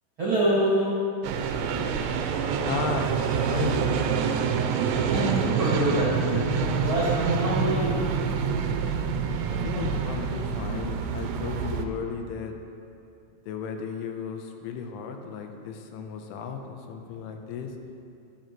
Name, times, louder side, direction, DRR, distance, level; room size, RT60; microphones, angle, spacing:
voice 1, 0.2-0.9 5.0-7.9, right 1 dB, 45° right, -9 dB, 1.7 m, -26 dB
sound 1, 1.2-11.9, right 6 dB, 80° right, 2.5 m, -27 dB
voice 2, 2.6-3.9 9.5-12.5 13.5-17.7, left 5 dB, 90° left, 4 dB, 3.2 m, -34 dB
14.5 x 12.0 x 3.1 m, 2.5 s
omnidirectional pair, 5.6 m